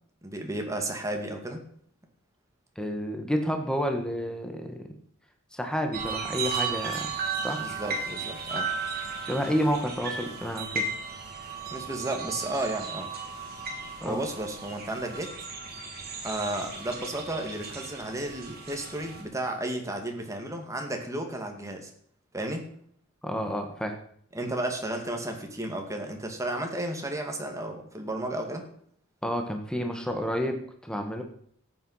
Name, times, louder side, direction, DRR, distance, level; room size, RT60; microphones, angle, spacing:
voice 1, 0.2-1.6 7.6-8.7 11.7-13.1 14.0-15.3 16.2-21.9 22.3-22.7 24.3-28.7, right 1 dB, 15° right, 3 dB, 2.3 m, -33 dB
voice 2, 2.7-4.9 5.5-7.1 7.4-7.6 9.2-10.8 14.0-14.2 23.2-23.9 29.2-31.2, equal, 5° left, 4 dB, 1.6 m, -30 dB
sound 1, 5.9-19.2, right 4 dB, 50° right, 3.5 m, -35 dB
13.5 x 9.3 x 5.7 m, 0.63 s
head